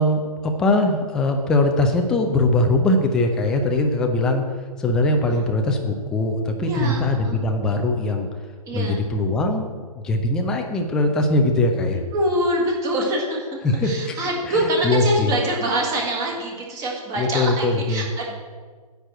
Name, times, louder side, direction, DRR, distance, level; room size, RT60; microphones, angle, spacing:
voice 1, 0.0-4.4 4.8-8.3 8.7-9.6 10.0-12.0 13.6-13.9 14.5-15.3 17.2-18.0, left 2 dB, 5° left, 3 dB, 0.3 m, -21 dB
voice 2, 6.6-7.4 8.6-9.0 11.9-13.5 13.8-18.4, right 1 dB, 15° right, -1 dB, 1.7 m, -25 dB
9.9 x 4.7 x 7.8 m, 1.5 s
figure-of-eight pair, 130°, 20 cm